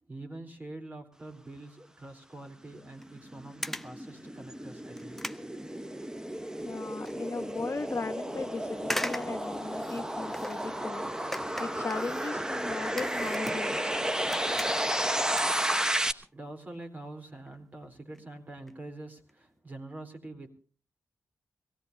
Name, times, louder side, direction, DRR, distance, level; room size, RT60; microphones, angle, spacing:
voice 1, 0.0-5.3 16.3-20.5, right 2 dB, 25° right, 4 dB, 3.9 m, -45 dB
sound 1, 2.9-16.1, right 1 dB, 10° right, 1.1 m, -32 dB
sound 2, 3.0-3.2 3.6-4.0 4.5-4.6 5.0-6.3 6.7-7.1 7.6-7.7 8.8-10.7 11.3-13.9 14.2-15.0 15.3-16.3 16.6-16.8 17.5-17.6 17.8-17.9 18.1-18.2 18.5-18.8 19.2-19.3 19.6-19.7, left 1 dB, 5° left, 0.6 m, -40 dB
voice 2, 6.6-11.0 11.6-13.9, left 4 dB, 45° left, 7 dB, 1.2 m, -37 dB
23.5 x 16.5 x 2.8 m, 0.38 s
cardioid pair, 50°, 6 cm